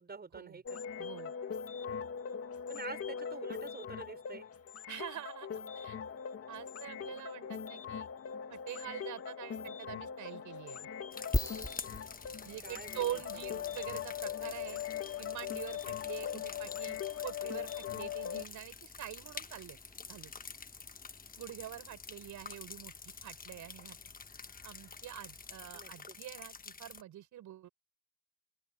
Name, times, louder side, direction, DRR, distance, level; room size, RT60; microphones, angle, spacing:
voice 1, 0.0-0.8 2.7-4.5 12.6-13.2 13.5-13.8 25.7-26.2, right 4 dB, 35° right, 6.1 m, -47 dB
sound 1, 0.7-18.4, left 8 dB, 50° left, 2.3 m, -41 dB
voice 2, 1.0-1.3 4.9-6.0 6.5-8.1 8.5-10.9 12.4-14.8 15.2-17.0 17.2-19.8 20.1-20.3 21.4-24.0 24.6-27.7, right 12 dB, 80° right, 7.3 m, -45 dB
sound 2, 11.1-27.0, left 5 dB, 30° left, 1.3 m, -49 dB
sound 3, 11.3-26.1, left 2 dB, 10° left, 2.8 m, -45 dB
open air
cardioid pair, 90°, 30 cm